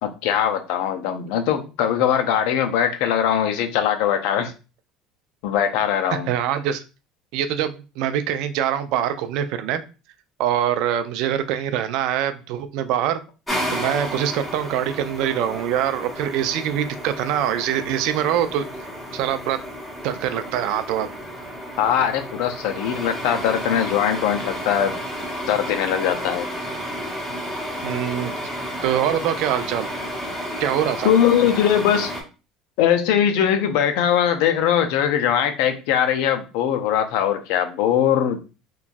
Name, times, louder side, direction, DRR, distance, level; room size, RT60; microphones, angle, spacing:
voice 1, 0.0-4.5 5.4-6.3 21.8-24.9 25.5-26.5 31.0-32.1 32.8-38.4, left 9 dB, 75° left, 7 dB, 0.5 m, -21 dB
voice 2, 6.1-6.8 7.3-9.8 10.4-13.2 13.7-18.6 19.1-19.6 20.0-21.1 27.8-28.3 28.8-29.9 30.6-31.1, right 10 dB, 70° right, 11 dB, 0.3 m, -24 dB
sound 1, 13.5-32.2, equal, 5° left, 0.9 m, -32 dB
2.9 x 2.3 x 2.5 m, 0.32 s
cardioid pair, 130°, 0 cm